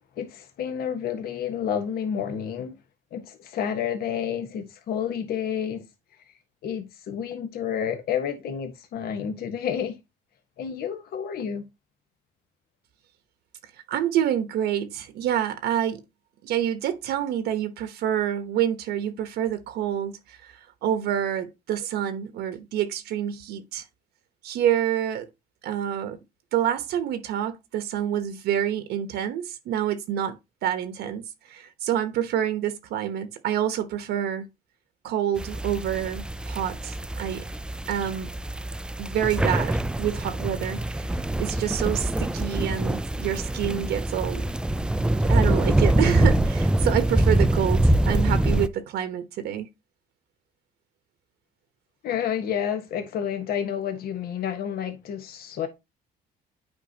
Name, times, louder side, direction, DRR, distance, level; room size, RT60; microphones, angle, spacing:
voice 1, 0.2-2.8 3.1-5.8 6.6-10.0 10.6-11.6 52.0-55.7, left 8 dB, 65° left, 1.3 m, -30 dB
voice 2, 13.9-16.0 16.4-23.8 24.4-25.3 25.6-26.2 26.5-30.4 30.6-31.2 31.5-34.4 35.0-37.4 37.9-38.3 39.0-41.1 41.4-44.4 45.3-49.7, right 10 dB, 75° right, 1.0 m, -27 dB
sound 1, 35.4-48.7, right 1 dB, 5° right, 0.3 m, -24 dB
8.9 x 4.9 x 2.9 m
cardioid pair, 110°, 17 cm